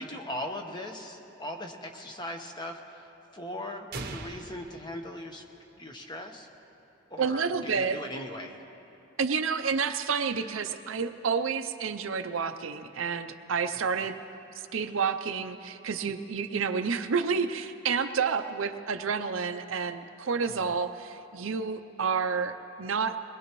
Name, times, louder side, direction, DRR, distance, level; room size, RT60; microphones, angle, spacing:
voice 1, 0.0-5.4 5.8-6.5 7.1-8.6 13.9-14.1 20.4-20.7, left 1 dB, 20° left, 3 dB, 1.0 m, -39 dB
sound 1, 3.9-5.8, right 3 dB, 50° right, 0.8 m, -41 dB
voice 2, 7.2-8.0 9.2-14.2 14.7-23.2, right 5 dB, 80° right, 8 dB, 0.6 m, -29 dB
22.0 x 20.0 x 3.1 m, 2.9 s
head